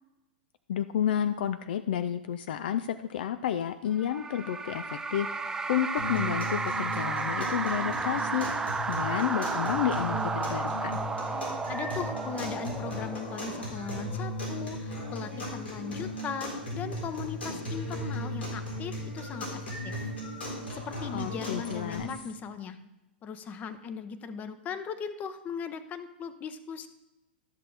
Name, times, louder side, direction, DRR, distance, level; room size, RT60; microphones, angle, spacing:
voice 1, 0.7-5.3 5.7-8.5 8.9-11.0 21.1-22.1, left 10 dB, 65° left, 11 dB, 0.4 m, -31 dB
sound 1, 4.0-13.7, right 4 dB, 10° right, 0.5 m, -33 dB
sound 2, 6.0-22.0, left 1 dB, 90° left, 3.9 m, -36 dB
voice 2, 11.4-20.1 20.7-22.8 23.2-26.9, left 6 dB, 25° left, 11 dB, 0.8 m, -38 dB
12.5 x 6.5 x 3.9 m, 0.98 s
hypercardioid pair, 105°, 6 cm